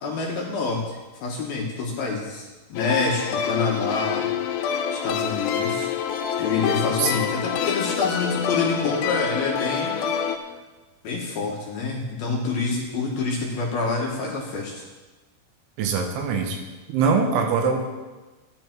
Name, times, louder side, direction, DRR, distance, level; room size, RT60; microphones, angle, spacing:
voice 1, 0.0-4.3 4.9-5.9 6.4-10.0 11.0-14.7, left 4 dB, 65° left, -1 dB, 2.7 m, -27 dB
sound 1, 2.8-10.4, left 8 dB, 85° left, 3.1 m, -26 dB
voice 2, 15.8-16.6 16.9-17.8, right 5 dB, 80° right, 3 dB, 3.6 m, -22 dB
13.0 x 10.5 x 4.5 m, 1.2 s
omnidirectional pair, 5.5 m